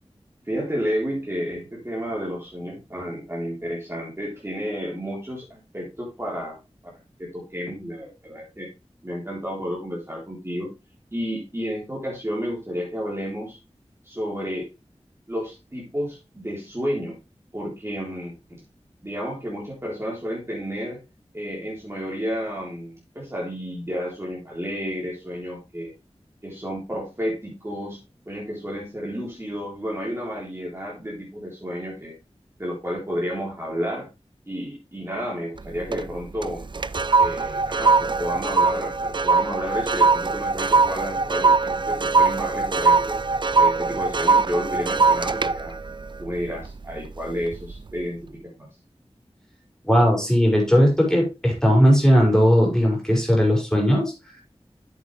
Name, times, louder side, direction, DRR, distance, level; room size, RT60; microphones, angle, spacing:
voice 1, 0.5-6.6 6.8-6.9 7.2-8.7 9.0-10.7 11.1-13.6 14.0-14.7 15.3-17.2 17.5-18.6 19.0-21.0 21.3-25.9 26.4-28.0 28.3-32.1 32.6-34.1 34.5-36.7 37.2-43.2 43.5-45.8 46.2-48.7, equal, 25° right, -4 dB, 3.7 m, -31 dB
sound 1, 35.6-36.1 36.4-47.0 47.4-47.7, right 4 dB, 45° right, 0.4 m, -21 dB
voice 2, 49.9-54.1, equal, 5° left, -1 dB, 5.3 m, -18 dB
8.2 x 8.1 x 3.3 m, 0.26 s
wide cardioid pair, 55°, 11 cm